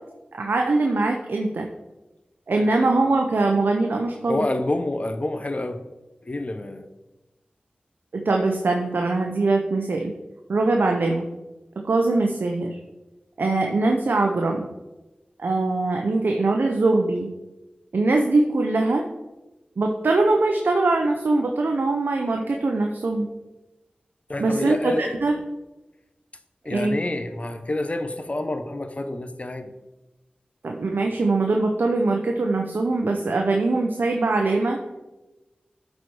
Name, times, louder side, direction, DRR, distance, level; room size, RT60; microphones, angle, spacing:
voice 1, 0.3-1.7 2.5-4.4 8.1-10.1 10.5-11.3 11.8-12.8 13.4-14.7 15.4-17.3 17.9-19.0 19.8-23.3 24.4-25.4 26.7-27.0 30.6-34.8, right 2 dB, 75° right, 2 dB, 0.7 m, -22 dB
voice 2, 4.3-5.8 6.2-6.9 24.3-25.2 26.6-29.7, left 2 dB, 40° left, 8 dB, 0.8 m, -28 dB
11.5 x 4.3 x 4.7 m, 1.1 s
cardioid pair, 40°, 3 cm